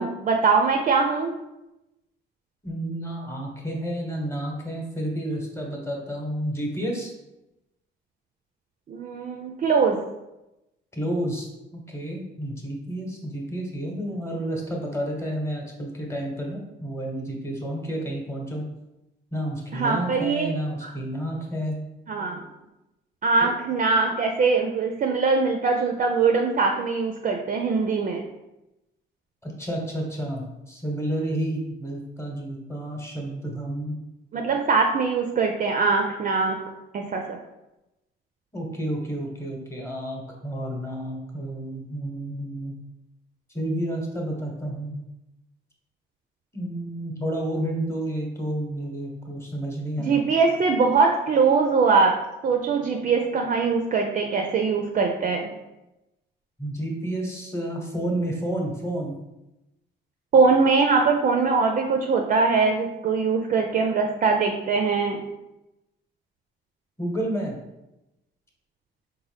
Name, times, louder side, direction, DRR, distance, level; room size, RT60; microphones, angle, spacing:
voice 1, 0.0-1.3 8.9-10.0 19.7-20.6 20.8-20.9 22.1-22.4 23.2-28.2 34.3-36.6 36.9-37.4 50.0-52.2 52.4-55.5 60.3-65.2, right 4 dB, 40° right, 3 dB, 0.4 m, -22 dB
voice 2, 2.6-7.1 10.9-18.6 19.3-21.8 29.4-34.0 38.5-42.7 43.5-45.0 46.5-50.2 56.6-59.1 67.0-67.6, right 1 dB, 15° left, 0 dB, 0.9 m, -30 dB
3.9 x 2.1 x 3.3 m, 0.94 s
cardioid pair, 90°, 20 cm